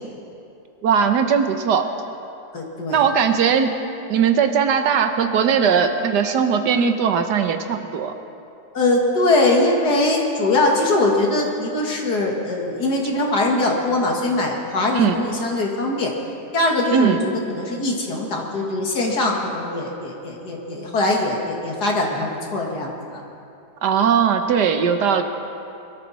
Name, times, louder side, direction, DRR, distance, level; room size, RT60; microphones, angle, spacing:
voice 1, 0.8-1.9 2.9-3.7 4.1-8.1 14.9-15.2 16.9-17.2 23.8-25.2, right 7 dB, 85° right, 7 dB, 1.5 m, -19 dB
voice 2, 2.5-3.0 8.7-16.1 16.5-23.2, left 2 dB, 70° left, 0 dB, 2.4 m, -22 dB
21.5 x 14.0 x 4.2 m, 2.7 s
omnidirectional pair, 1.8 m